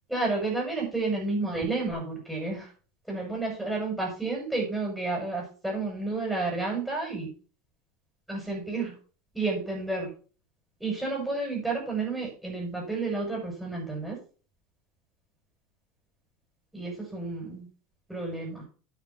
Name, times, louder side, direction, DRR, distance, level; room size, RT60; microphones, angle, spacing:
voice 1, 0.1-2.7 3.1-7.3 8.3-8.9 9.3-10.1 10.8-14.2 16.7-17.7 18.1-18.6, right 3 dB, 5° right, -3 dB, 6.6 m, -31 dB
10.0 x 8.2 x 4.4 m, 0.38 s
figure-of-eight pair, 75°, 0 cm